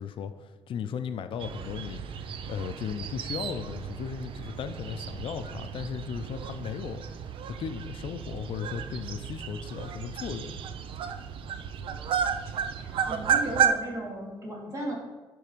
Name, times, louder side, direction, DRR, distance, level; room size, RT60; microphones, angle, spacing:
voice 1, 0.0-2.0 2.4-7.0 7.5-10.6, left 7 dB, 70° left, 10 dB, 0.5 m, -36 dB
sound 1, 1.4-13.7, right 7 dB, 70° right, 0.5 m, -33 dB
voice 2, 12.8-14.9, right 1 dB, 35° right, -3 dB, 2.2 m, -35 dB
9.7 x 3.5 x 5.1 m, 1.2 s
cardioid pair, 135°, 9 cm